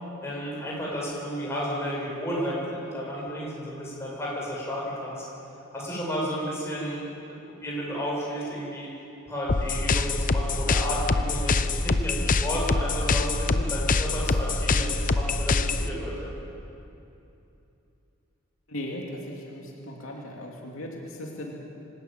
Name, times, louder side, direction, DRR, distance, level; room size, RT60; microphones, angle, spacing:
voice 1, 0.2-5.2 5.7-7.0 7.6-8.9 9.3-16.3, equal, 15° left, -5 dB, 7.0 m, -32 dB
sound 1, 9.5-15.9, left 3 dB, 40° left, 0.7 m, -25 dB
voice 2, 18.7-21.5, left 1 dB, 75° left, -1 dB, 2.8 m, -37 dB
25.0 x 13.0 x 9.2 m, 2.8 s
head